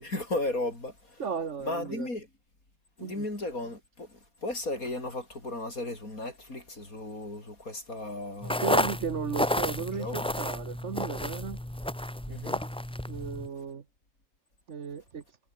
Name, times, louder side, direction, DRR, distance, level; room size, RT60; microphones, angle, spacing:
voice 1, 0.0-1.2 1.6-2.3 3.0-8.6 9.9-10.3 12.3-12.6, left 2 dB, 80° left, 7.3 m, -35 dB
voice 2, 1.2-2.1 3.0-3.3 8.6-11.6 13.1-13.8 14.7-15.2, right 6 dB, 55° right, 1.5 m, -35 dB
sound 1, 8.4-13.5, left 1 dB, 5° left, 0.9 m, -31 dB
omnidirectional pair, 1.5 m